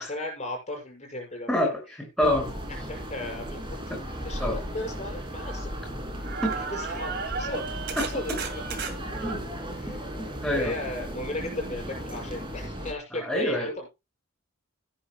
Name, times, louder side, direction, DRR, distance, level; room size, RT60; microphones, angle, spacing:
voice 1, 0.0-1.5 2.9-5.7 6.5-8.6 9.8-10.0 10.5-13.9, left 1 dB, 35° left, 1 dB, 6.3 m, -36 dB
voice 2, 1.5-2.5 4.4-4.6 6.4-6.5 8.0-8.1 9.2-9.4 10.2-10.7 13.1-13.9, left 1 dB, 5° left, 0 dB, 6.2 m, -27 dB
sound 1, 2.2-12.9, equal, 25° right, 2.8 m, -36 dB
sound 2, 3.5-3.6 4.2-6.0 6.2-9.4 12.2-12.3 12.6-12.7, right 5 dB, 50° right, 2.4 m, -36 dB
17.5 x 10.0 x 2.3 m, 0.25 s
head